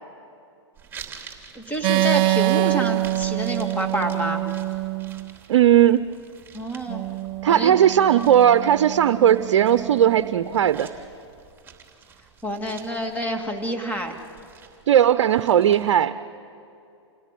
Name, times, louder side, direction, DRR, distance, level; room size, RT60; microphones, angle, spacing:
sound 1, 0.8-15.9, right 7 dB, 15° right, 3.1 m, -47 dB
voice 1, 1.5-4.4 6.5-7.1 7.5-7.8 12.4-14.1, equal, 10° left, 4 dB, 2.6 m, -28 dB
sound 2, 1.8-5.3 6.9-10.5, right 16 dB, 35° right, 0.5 m, -26 dB
voice 2, 5.5-6.0 7.4-10.9 14.9-16.1, right 10 dB, 60° right, 12 dB, 0.8 m, -17 dB
27.5 x 17.5 x 9.3 m, 2.6 s
hypercardioid pair, 115°, 15 cm